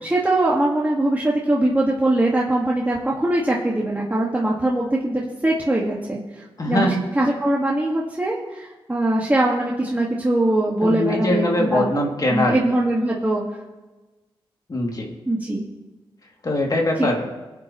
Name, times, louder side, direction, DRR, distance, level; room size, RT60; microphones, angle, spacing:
voice 1, 0.0-6.2 6.7-11.9 12.3-13.4 15.3-15.7 17.0-17.1, right 1 dB, 20° right, -4 dB, 1.8 m, -21 dB
voice 2, 6.6-7.0 10.8-12.6 14.7-15.1 16.4-17.3, left 1 dB, 45° left, 0 dB, 2.6 m, -22 dB
24.0 x 8.3 x 3.1 m, 1.2 s
cardioid pair, 60°, 9 cm